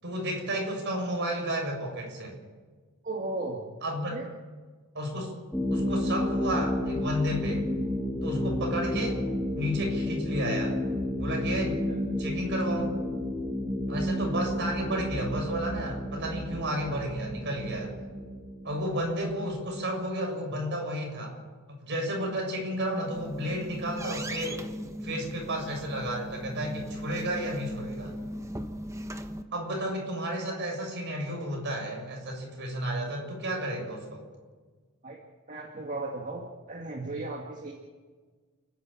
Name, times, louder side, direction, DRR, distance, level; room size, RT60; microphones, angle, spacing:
voice 1, 0.0-2.4 3.8-4.2 4.9-5.4 5.7-7.7 8.2-9.3 9.6-10.8 11.2-11.8 12.2-13.0 13.9-17.9 18.6-21.4 21.8-24.6 25.0-28.1 29.5-34.2, equal, 55° right, 1 dB, 6.9 m, -32 dB
voice 2, 3.0-3.7 4.1-4.3 11.9-12.0 14.3-14.4 35.0-35.2 35.5-36.4 36.7-37.7, right 2 dB, 35° right, 0 dB, 2.1 m, -35 dB
sound 1, 5.5-19.9, left 1 dB, 5° left, 2.1 m, -31 dB
sound 2, 22.9-29.4, equal, 15° right, 1.1 m, -38 dB
29.5 x 11.0 x 8.8 m, 1.4 s
head